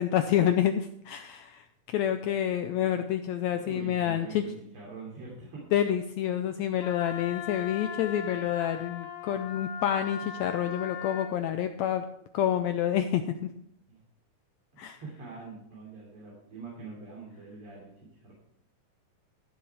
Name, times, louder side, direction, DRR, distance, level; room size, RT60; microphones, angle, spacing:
voice 1, 0.0-1.7 1.9-4.4 5.7-12.0 12.3-13.5 14.8-15.0, left 10 dB, 90° left, 8 dB, 1.6 m, -28 dB
voice 2, 3.5-5.6 13.9-14.0 14.7-18.3, right 4 dB, 45° right, -5 dB, 3.8 m, -44 dB
Wind instrument woodwind instrument, 6.8-11.3, left 7 dB, 70° left, 2.1 m, -39 dB
14.5 x 7.2 x 4.7 m, 0.74 s
omnidirectional pair, 3.8 m